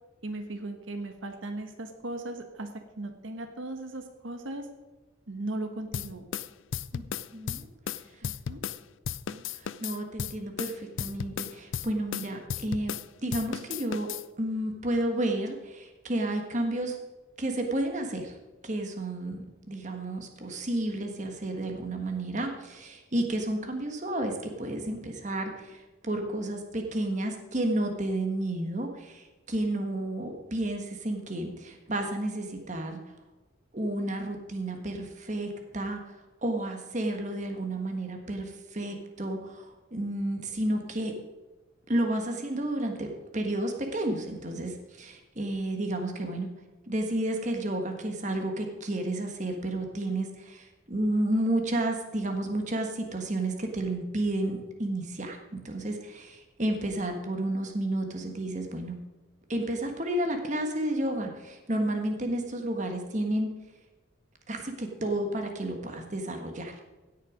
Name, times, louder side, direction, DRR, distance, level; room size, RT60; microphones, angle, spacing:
voice 1, 0.2-2.7 3.0-4.7 5.3-6.2 8.2-8.6, right 2 dB, 80° right, 6 dB, 1.3 m, -37 dB
sound 1, 5.9-8.8 9.1-13.1 13.3-14.2, left 8 dB, 75° left, 0.4 m, -35 dB
voice 2, 7.3-7.7 9.3-12.9 13.2-14.1 14.4-17.0 17.4-18.4 18.6-33.0 33.7-36.0 36.4-39.7 39.9-41.1 41.9-46.5 46.9-59.0 59.5-63.5 64.5-66.7, right 1 dB, 40° right, 4 dB, 1.5 m, -31 dB
16.5 x 6.6 x 5.1 m, 1.2 s
head